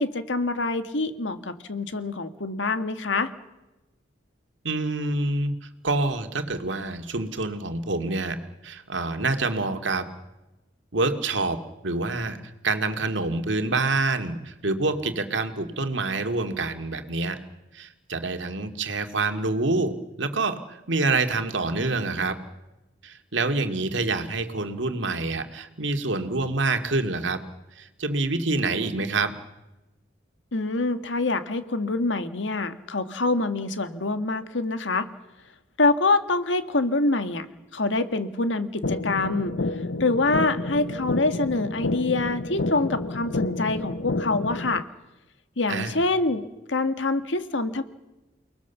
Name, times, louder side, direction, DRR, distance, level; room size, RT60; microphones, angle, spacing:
voice 1, 0.0-3.3 30.5-35.1 35.8-37.5 37.7-39.5 40.0-44.8 45.6-46.4 46.7-47.8, left 3 dB, 85° left, 9 dB, 1.7 m, -25 dB
voice 2, 4.6-8.4 8.6-10.0 10.9-12.4 12.6-17.4 17.7-22.4 23.0-27.4 27.8-29.3 45.7-46.0, right 3 dB, 85° right, 6 dB, 2.2 m, -27 dB
sound 1, 38.8-44.8, left 2 dB, 65° left, 0.8 m, -30 dB
29.5 x 20.0 x 7.2 m, 1.0 s
head